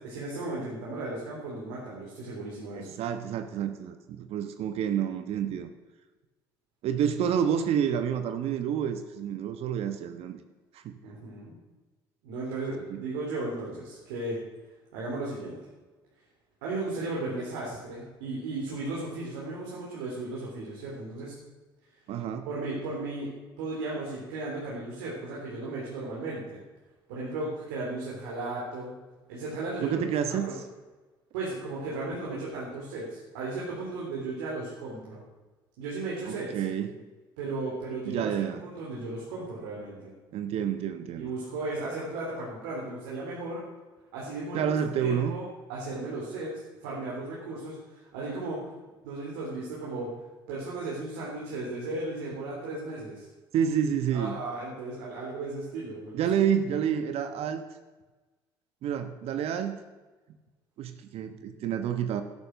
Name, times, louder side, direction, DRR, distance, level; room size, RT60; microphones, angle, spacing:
voice 1, 0.0-2.9 11.0-11.6 12.2-14.4 14.9-15.6 16.6-21.4 22.5-23.3 23.6-26.6 27.1-28.9 29.3-30.0 30.3-30.5 31.3-35.2 35.8-36.6 37.4-38.3 38.6-40.1 41.2-43.6 44.1-45.4 45.7-46.5 46.8-48.7 49.0-50.1 50.5-53.3 54.1-56.2, right 2 dB, 75° right, -5 dB, 3.9 m, -35 dB
voice 2, 2.7-5.7 6.8-10.4 10.7-10.9 12.9-13.0 22.1-22.5 29.8-30.6 36.3-36.9 38.1-38.6 40.3-41.3 44.5-45.4 53.5-54.3 56.1-57.6 58.8-59.8 60.8-62.2, right 8 dB, 60° right, 9 dB, 1.1 m, -29 dB
12.5 x 11.0 x 6.6 m, 1.2 s
hypercardioid pair, 55°, 12 cm